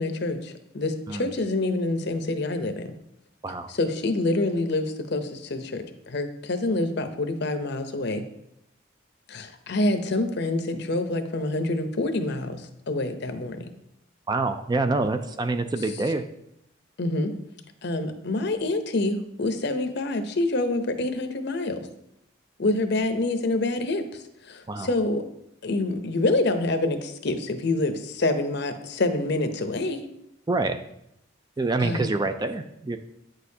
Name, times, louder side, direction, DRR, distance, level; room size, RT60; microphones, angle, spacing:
voice 1, 0.0-2.9 3.7-8.2 9.3-13.7 17.0-17.3 17.8-21.9 22.6-25.2 25.6-30.0 31.8-32.1, left 2 dB, 55° left, 8 dB, 0.7 m, -27 dB
voice 2, 14.3-16.2 24.7-24.9 30.5-30.8 31.6-33.0, right 3 dB, 20° right, 8 dB, 0.3 m, -26 dB
8.9 x 6.4 x 2.8 m, 0.78 s
head